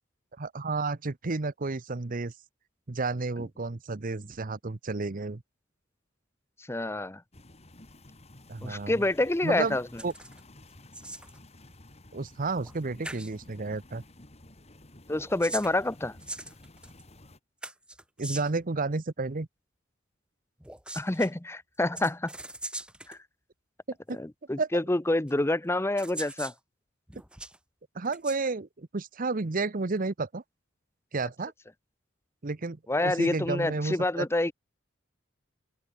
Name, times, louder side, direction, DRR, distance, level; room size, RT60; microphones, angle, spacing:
voice 1, 0.4-2.3 2.9-5.4 8.5-8.9 9.4-9.8 10.0-10.1 12.1-14.0 18.2-19.5 23.9-24.2 24.6-24.7 27.9-30.4 31.1-31.5 32.4-34.3, right 3 dB, 45° right, 0.8 m, -31 dB
voice 2, 6.6-7.2 8.6-10.0 15.1-16.2 20.9-22.3 23.1-23.2 24.1-26.5 32.9-34.5, left 1 dB, 15° left, 0.7 m, -28 dB
sound 1, 7.3-17.4, left 1 dB, 35° left, 2.8 m, -52 dB
sound 2, 10.0-10.4 10.7-11.4 12.6-12.8 13.0-13.3 15.1-17.0 17.6-18.6 20.6-21.3 21.9-23.2 24.1-24.2 25.3-25.4 26.0-26.6 27.1-27.6 28.0-28.4, right 1 dB, 5° right, 5.0 m, -41 dB
head